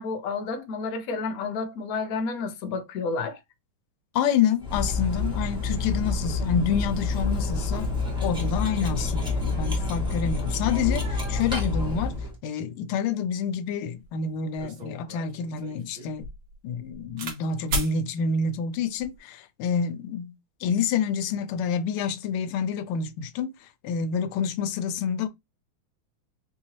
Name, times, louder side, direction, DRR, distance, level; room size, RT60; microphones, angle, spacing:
voice 1, 0.0-3.4, left 4 dB, 65° left, 0.9 m, -30 dB
voice 2, 4.1-7.9 8.2-12.1 12.4-16.2 16.6-20.3 20.6-23.5 23.8-25.3, left 6 dB, 90° left, 1.5 m, -28 dB
Cutlery silverware, 4.6-12.3, left 3 dB, 5° right, 1.1 m, -28 dB
sound 1, 14.0-14.1 14.6-17.4 17.7-18.0 18.8-19.2, right 1 dB, 75° right, 2.1 m, -34 dB
4.5 x 2.7 x 2.8 m
omnidirectional pair, 2.3 m